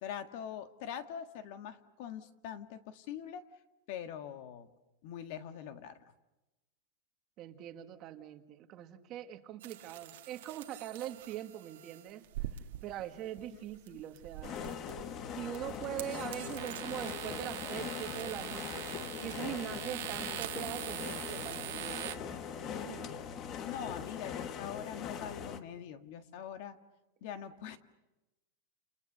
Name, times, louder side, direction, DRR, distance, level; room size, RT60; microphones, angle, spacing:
voice 1, 0.0-3.4 3.9-4.7 5.0-6.0 13.9-14.0 23.6-26.8 27.2-27.8, left 9 dB, 50° left, 8 dB, 1.7 m, -43 dB
voice 2, 7.4-12.2 12.8-14.7 15.4-18.8 19.2-23.2, right 12 dB, 30° right, 7 dB, 1.6 m, -42 dB
sound 1, 9.6-22.1, right 14 dB, 70° right, 1.6 m, -43 dB
sound 2, 14.4-25.6, left 7 dB, 30° left, 1.2 m, -41 dB
30.0 x 29.5 x 6.7 m, 1.0 s
supercardioid pair, 170°, 0 cm